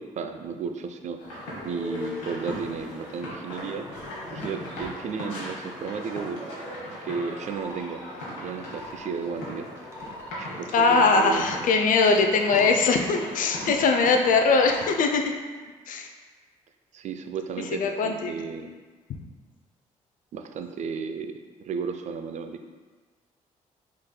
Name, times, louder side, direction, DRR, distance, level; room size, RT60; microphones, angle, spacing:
voice 1, 0.0-3.9 4.3-6.4 7.0-8.0 8.4-9.7 10.4-11.4 13.7-13.8 16.9-18.7 20.3-21.3 21.6-22.6, right 5 dB, 45° right, 7 dB, 0.4 m, -33 dB
sound 1, 1.2-14.9, left 1 dB, 75° left, 1.0 m, -39 dB
sound 2, 7.4-7.8 8.4-9.1 9.7-10.4 11.0-11.7 12.3-12.7 13.3-13.9 14.4-14.9, left 2 dB, 15° right, 1.0 m, -42 dB
voice 2, 10.7-15.3 15.9-16.1 17.8-18.3, left 4 dB, 50° left, 4 dB, 0.5 m, -21 dB
4.7 x 3.7 x 2.2 m, 1.4 s
figure-of-eight pair, 40°, 17 cm